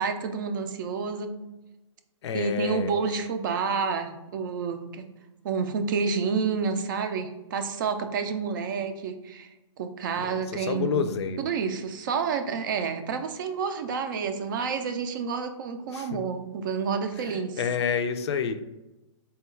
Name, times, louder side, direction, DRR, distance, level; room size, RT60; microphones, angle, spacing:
voice 1, 0.0-1.3 2.3-5.1 5.4-11.1 11.4-17.6, right 5 dB, 40° right, 7 dB, 0.4 m, -29 dB
voice 2, 2.2-2.9 10.2-11.5 15.9-16.2 17.2-18.6, left 6 dB, 60° left, 9 dB, 0.4 m, -29 dB
3.7 x 2.3 x 4.3 m, 1.0 s
hypercardioid pair, 160°, 16 cm